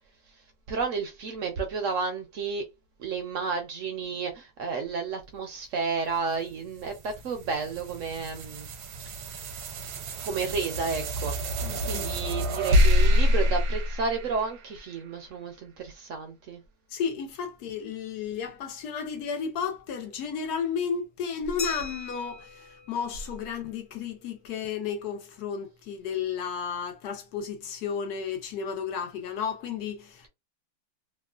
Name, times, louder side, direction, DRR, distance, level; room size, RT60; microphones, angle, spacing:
voice 1, 0.7-2.6 3.0-8.7 10.2-11.3 11.8-16.6, right 5 dB, 65° right, 0.8 m, -31 dB
sound 1, 6.3-14.9, left 1 dB, 80° right, 1.2 m, -27 dB
voice 2, 11.6-12.2 16.9-30.3, left 6 dB, 80° left, 1.2 m, -33 dB
Glass, 21.6-24.0, left 4 dB, 45° left, 0.6 m, -40 dB
3.0 x 2.1 x 2.3 m
omnidirectional pair, 1.7 m